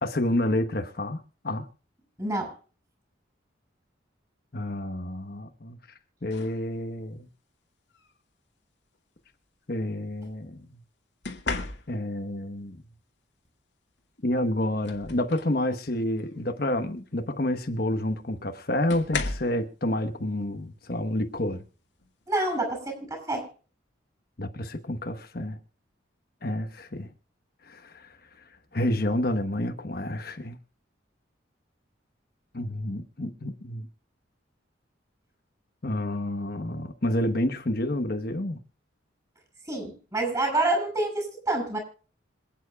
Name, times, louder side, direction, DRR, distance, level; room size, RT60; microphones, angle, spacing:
voice 1, 0.0-1.6 4.5-5.8 6.2-7.3 9.7-10.8 11.9-12.8 14.2-21.6 24.4-25.6 26.4-27.1 27.6-28.1 28.7-30.6 32.5-33.9 35.8-38.6, left 1 dB, 50° left, 1.2 m, -29 dB
voice 2, 2.2-2.5 22.3-23.5 39.7-41.8, right 2 dB, 20° right, 6.1 m, -27 dB
sound 1, 6.3-6.6 7.9-8.2 11.2-12.2 14.0-14.1 14.5-15.6 16.1-16.4 17.7-17.8 18.9-19.6 21.3-21.5 22.0-22.3, left 3 dB, 70° left, 2.0 m, -35 dB
27.0 x 9.2 x 2.4 m
head